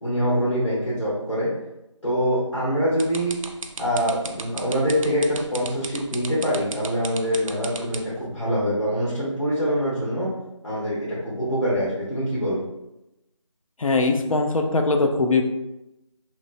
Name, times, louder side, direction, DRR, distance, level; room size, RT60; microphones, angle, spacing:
voice 1, 0.0-1.5 2.0-3.3 3.8-10.3 10.6-12.6, equal, 70° left, -9 dB, 1.2 m, -24 dB
sound 1, 3.0-8.2, right 4 dB, 90° right, 0.4 m, -34 dB
voice 2, 13.8-15.4, left 3 dB, 90° left, 4 dB, 0.5 m, -21 dB
3.0 x 2.1 x 2.5 m, 0.91 s
figure-of-eight pair, 180°, 17 cm